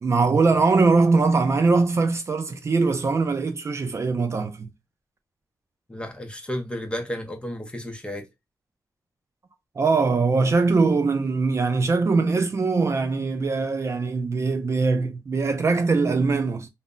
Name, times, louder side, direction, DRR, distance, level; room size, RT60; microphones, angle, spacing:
voice 1, 0.0-4.7 9.8-16.7, right 4 dB, 40° right, 0.4 m, -21 dB
voice 2, 5.9-8.3, equal, 15° left, 0.6 m, -32 dB
2.1 x 2.0 x 3.6 m
wide cardioid pair, 110°, 7 cm